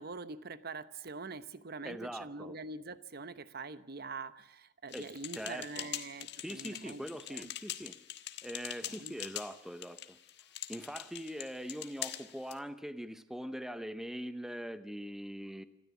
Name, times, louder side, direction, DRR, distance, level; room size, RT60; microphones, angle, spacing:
voice 1, 0.0-7.5 8.8-9.2, right 3 dB, 55° right, 14 dB, 1.0 m, -44 dB
voice 2, 1.8-2.6 4.9-5.1 5.3-5.9 6.4-8.0 8.4-10.2 10.7-15.6, equal, ahead, 11 dB, 0.8 m, -42 dB
sound 1, 4.9-12.6, left 12 dB, 60° left, 1.4 m, -44 dB
26.5 x 13.5 x 8.3 m, 0.90 s
head